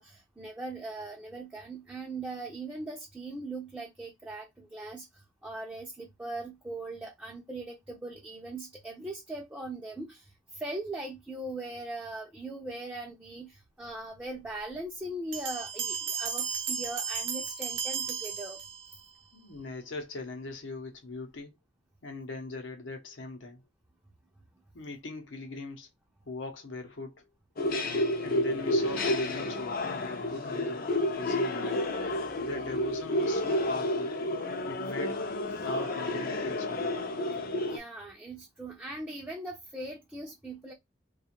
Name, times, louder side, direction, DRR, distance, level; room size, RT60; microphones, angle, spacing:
voice 1, 0.0-18.6 37.6-40.7, right 2 dB, 10° right, 0.5 m, -40 dB
sound 1, 15.3-19.1, right 7 dB, 80° right, 0.7 m, -34 dB
voice 2, 19.3-21.5 22.0-23.6 24.7-25.9 26.3-27.3 28.2-31.9 32.4-34.2 34.7-35.3 35.6-37.0, left 3 dB, 80° left, 0.8 m, -40 dB
sound 2, 27.6-37.8, left 1 dB, 50° left, 0.5 m, -30 dB
2.5 x 2.3 x 2.8 m
head